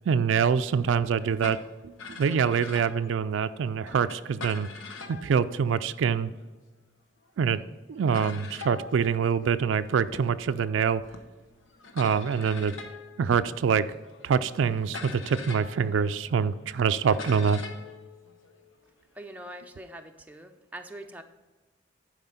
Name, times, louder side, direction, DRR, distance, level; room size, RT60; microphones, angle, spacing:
voice 1, 0.1-1.6 1.8-4.7 5.1-6.3 7.4-7.6 7.9-11.0 11.9-12.7 13.2-13.8 14.2-17.6, right 6 dB, 75° right, 13 dB, 0.3 m, -25 dB
sound 1, 1.2-6.5 7.3-7.4 7.5-7.7 8.1-19.2, left 3 dB, 90° left, 1.0 m, -44 dB
voice 2, 19.1-21.2, right 1 dB, 10° right, 4 dB, 0.5 m, -43 dB
11.0 x 4.9 x 5.5 m, 1.2 s
head